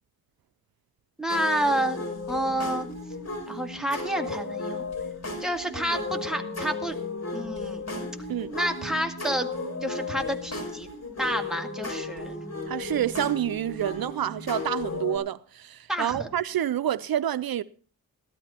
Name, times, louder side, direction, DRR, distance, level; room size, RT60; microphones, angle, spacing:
voice 1, 1.2-2.0 2.3-2.9 3.5-4.8 5.4-7.0 7.3-7.8 8.5-9.5 9.8-10.9 11.2-12.4 15.9-16.3, right 1 dB, ahead, 2.1 m, -29 dB
sound 1, 1.3-15.2, left 3 dB, 45° left, 5.6 m, -34 dB
voice 2, 12.7-17.6, right 11 dB, 75° right, 0.5 m, -28 dB
16.0 x 12.5 x 4.3 m
wide cardioid pair, 100°, 36 cm